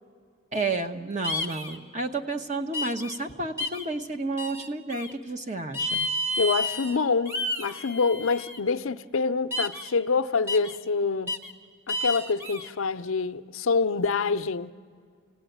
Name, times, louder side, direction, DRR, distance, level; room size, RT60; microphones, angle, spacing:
voice 1, 0.5-6.1, right 3 dB, 35° right, 1.1 m, -31 dB
sound 1, 1.2-1.8 2.7-3.2 3.6-3.8 4.4-5.1 5.7-7.0 7.2-8.6 9.5-9.9 10.5-10.7 11.3-11.5 11.9-12.7, left 1 dB, 10° right, 1.2 m, -31 dB
voice 2, 6.4-11.4 11.9-14.7, left 4 dB, 70° left, 0.6 m, -26 dB
28.5 x 18.0 x 9.2 m
head